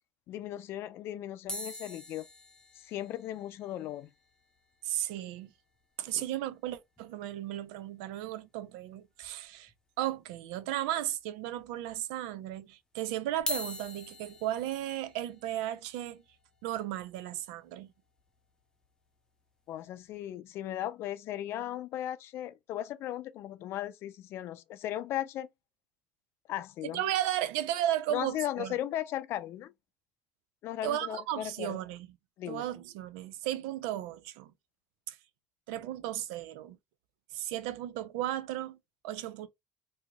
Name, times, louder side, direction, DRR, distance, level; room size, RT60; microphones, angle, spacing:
voice 1, 0.3-2.2 2.9-4.1 6.1-6.2 19.7-25.5 26.5-27.0 28.1-29.7 30.6-31.8 32.4-32.6, left 12 dB, 65° left, 0.4 m, -37 dB
sound 1, 1.5-5.8 6.1-6.2 6.4-6.6 7.0-7.1 8.4-8.5 9.2-9.8 10.3-10.4 11.2-11.3 13.3-19.4 20.0-20.2, left 1 dB, 15° left, 0.6 m, -44 dB
voice 2, 4.8-5.5 6.0-9.7 10.0-16.2 16.6-17.9 26.9-28.7 30.8-32.1 32.5-34.5 35.1-35.2 35.7-36.8 37.3-38.8 39.0-39.5, right 13 dB, 90° right, 0.4 m, -35 dB
2.9 x 2.6 x 2.2 m
supercardioid pair, 95°, 5 cm